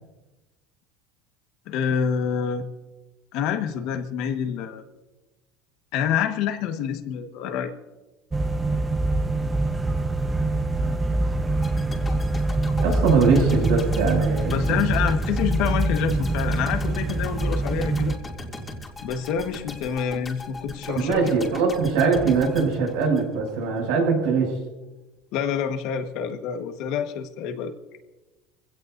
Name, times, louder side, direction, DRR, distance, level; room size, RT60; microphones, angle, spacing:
voice 1, 1.7-2.7 3.3-4.8 5.9-7.7 14.5-18.1 19.0-21.3 25.3-27.7, left 8 dB, 60° left, 6 dB, 1.4 m, -27 dB
sound 1, 8.3-18.1, right 2 dB, 15° right, 0.8 m, -24 dB
sound 2, 11.6-23.6 23.9-24.1, left 2 dB, 15° left, 2.6 m, -39 dB
voice 2, 12.8-14.8 20.9-24.5, right 5 dB, 75° right, 1 dB, 6.9 m, -22 dB
25.0 x 17.0 x 2.7 m, 1.1 s
cardioid pair, 155°, 0 cm